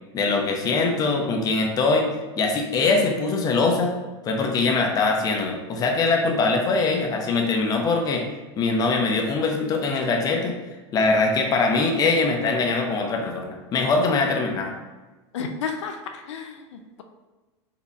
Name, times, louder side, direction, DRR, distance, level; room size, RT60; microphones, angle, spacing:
voice 1, 0.1-2.1 2.4-3.9 4.2-8.2 8.6-10.6 10.9-14.7, left 3 dB, 25° left, 2 dB, 0.6 m, -22 dB
voice 2, 15.3-17.0, left 5 dB, 90° left, 5 dB, 0.4 m, -32 dB
4.1 x 2.8 x 2.4 m, 1.2 s
supercardioid pair, 125°, 15 cm